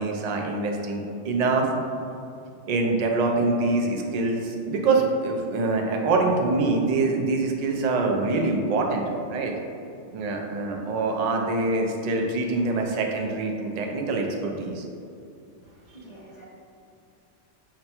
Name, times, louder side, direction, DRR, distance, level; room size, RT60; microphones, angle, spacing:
voice 1, 0.0-1.7 2.7-9.5 10.1-14.8, right 3 dB, 55° right, 1 dB, 0.4 m, -25 dB
voice 2, 15.6-16.4, right 1 dB, 50° left, -4 dB, 0.5 m, -48 dB
4.9 x 2.2 x 4.2 m, 2.6 s
omnidirectional pair, 1.2 m